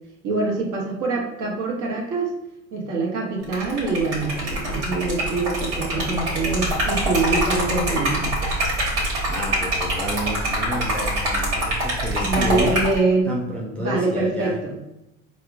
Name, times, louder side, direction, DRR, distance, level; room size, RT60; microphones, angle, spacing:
voice 1, 0.2-2.3 2.7-8.4 12.2-13.4 13.8-14.8, right 3 dB, 55° right, -1 dB, 1.0 m, -24 dB
Liquid, 3.4-13.0, right 1 dB, 75° right, 1.3 m, -24 dB
voice 2, 9.3-12.7 13.2-14.6, equal, 5° left, -3 dB, 0.5 m, -30 dB
4.2 x 2.0 x 2.5 m, 0.87 s
hypercardioid pair, 75°, 37 cm